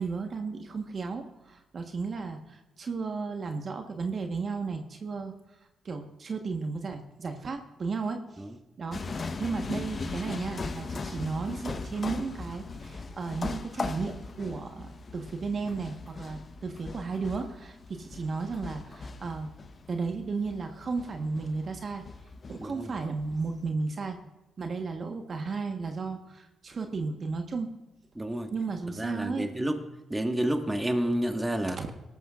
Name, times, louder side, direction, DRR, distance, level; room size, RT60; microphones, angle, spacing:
voice 1, 0.0-5.3 5.8-8.2 8.8-19.5 19.9-22.0 22.5-24.2 24.6-27.7 28.5-29.5 31.7-31.9, right 4 dB, 55° right, 4 dB, 1.3 m, -34 dB
sound 1, 8.9-23.7, left 4 dB, 50° left, 1.1 m, -39 dB
voice 2, 22.6-22.9 28.2-28.5 29.0-29.8 30.1-31.8, right 1 dB, 15° right, 5 dB, 1.6 m, -29 dB
19.0 x 13.0 x 2.5 m, 1.0 s
supercardioid pair, 50°, 0 cm